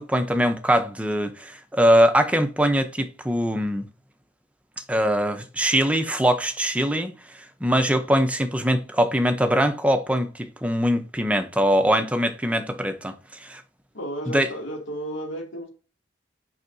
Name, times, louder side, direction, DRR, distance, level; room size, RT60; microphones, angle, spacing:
voice 1, 0.0-3.9 4.9-7.1 7.6-13.1 13.4-13.6 14.3-14.5, equal, 5° right, 0.7 m, -22 dB
voice 2, 13.9-15.7, right 1 dB, 75° left, 2.6 m, -33 dB
6.5 x 5.6 x 2.7 m
head